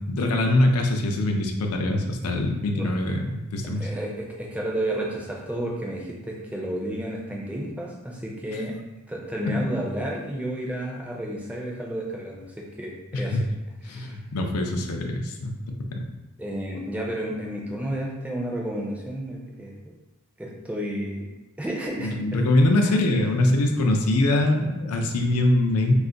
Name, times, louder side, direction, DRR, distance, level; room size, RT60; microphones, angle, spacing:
voice 1, 0.1-3.9 13.1-13.4 13.8-15.5 15.8-16.0 22.0-25.9, left 1 dB, 85° left, 3 dB, 0.4 m, -23 dB
voice 2, 3.8-8.8 9.1-13.4 13.8-14.2 16.4-19.9 20.4-21.3 21.6-22.5 22.8-23.0, right 1 dB, 5° right, -2 dB, 0.4 m, -31 dB
2.4 x 2.4 x 3.8 m, 1.0 s
head